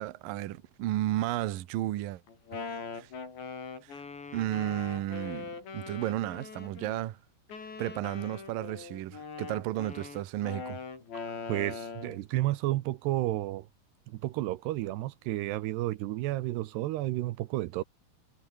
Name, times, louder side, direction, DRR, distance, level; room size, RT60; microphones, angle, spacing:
voice 1, 0.0-2.2 2.9-3.1 3.8-4.0 4.3-7.2 7.8-10.8, right 14 dB, 65° right, 2.5 m, -33 dB
Wind instrument woodwind instrument, 2.3-7.0 7.5-12.2, left 5 dB, 85° left, 9.6 m, -41 dB
voice 2, 11.5-13.7 14.1-17.8, right 16 dB, 80° right, 2.9 m, -31 dB
omnidirectional pair, 4.9 m